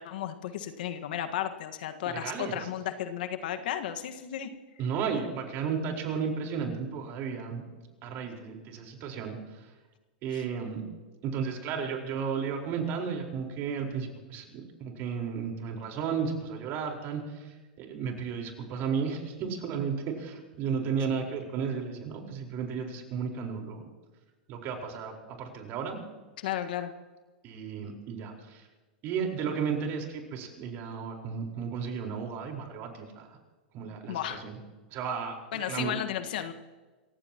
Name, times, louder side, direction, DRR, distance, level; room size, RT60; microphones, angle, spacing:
voice 1, 0.0-4.5 10.3-10.4 26.4-26.9 34.1-34.5 35.5-36.5, left 10 dB, 70° left, 8 dB, 1.6 m, -34 dB
voice 2, 2.0-2.6 4.8-7.6 8.0-9.7 10.2-10.8 11.2-23.8 24.5-26.0 27.4-28.7 29.0-33.3 33.7-34.6 34.9-36.0, right 6 dB, 45° right, 2 dB, 4.5 m, -34 dB
28.0 x 15.5 x 3.0 m, 1.3 s
hypercardioid pair, 105°, 5 cm